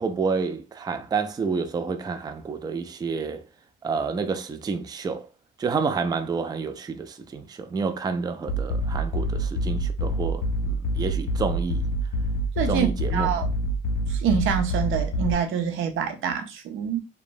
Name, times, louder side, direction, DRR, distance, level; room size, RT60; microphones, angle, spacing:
voice 1, 0.0-3.4 3.8-5.3 5.6-11.8 12.7-13.4, right 5 dB, 20° right, 0.3 m, -29 dB
sound 1, 8.5-15.3, right 1 dB, 80° left, 0.5 m, -26 dB
voice 2, 12.6-13.5 14.1-17.0, right 7 dB, 80° right, 0.6 m, -26 dB
3.0 x 2.1 x 2.5 m
cardioid pair, 90°, 20 cm